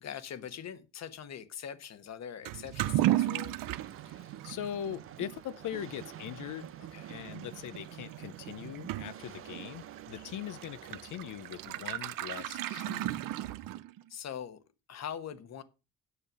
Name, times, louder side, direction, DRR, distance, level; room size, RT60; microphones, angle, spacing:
voice 1, 0.0-3.6 6.8-7.1 9.1-9.2 10.1-10.3 14.1-14.6 14.9-15.6, left 8 dB, 55° left, 1.2 m, -42 dB
Toilet flush / Liquid, 2.4-14.1, right 14 dB, 90° right, 0.7 m, -36 dB
sound 1, 3.2-11.8, right 9 dB, 40° right, 0.7 m, -51 dB
voice 2, 4.1-6.7 7.1-13.2, left 10 dB, 70° left, 0.7 m, -41 dB
9.8 x 6.7 x 6.0 m
cardioid pair, 140°, 32 cm